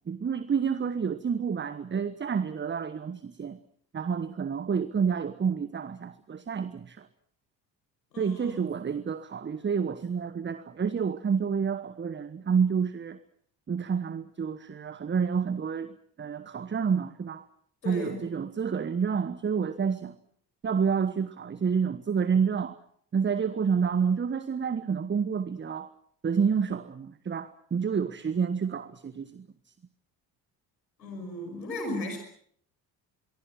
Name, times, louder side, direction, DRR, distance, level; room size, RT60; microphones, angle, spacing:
voice 1, 0.1-3.6 3.9-7.1 8.2-13.2 13.7-17.4 17.8-20.1 20.6-22.8 23.1-25.9 26.2-29.5, right 6 dB, 20° right, 14 dB, 1.2 m, -29 dB
voice 2, 8.1-8.6 17.8-18.2 31.0-32.2, left 1 dB, 80° left, 5 dB, 5.9 m, -36 dB
25.5 x 23.5 x 6.0 m, 0.62 s
figure-of-eight pair, 50°, 50 cm